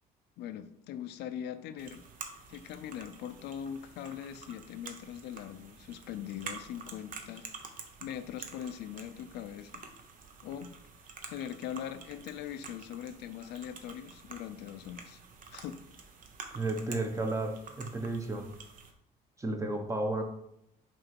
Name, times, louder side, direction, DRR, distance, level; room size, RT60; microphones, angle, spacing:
voice 1, 0.4-2.0 2.5-7.5 8.0-9.8 10.4-10.7 11.3-15.2 15.5-15.8, left 9 dB, 80° left, 10 dB, 0.5 m, -41 dB
sound 1, 1.8-18.9, right 5 dB, 55° right, 1.0 m, -49 dB
voice 2, 16.5-18.5 19.4-20.2, right 2 dB, 20° right, 5 dB, 1.0 m, -33 dB
5.9 x 3.3 x 5.3 m, 0.77 s
cardioid pair, 110°, 17 cm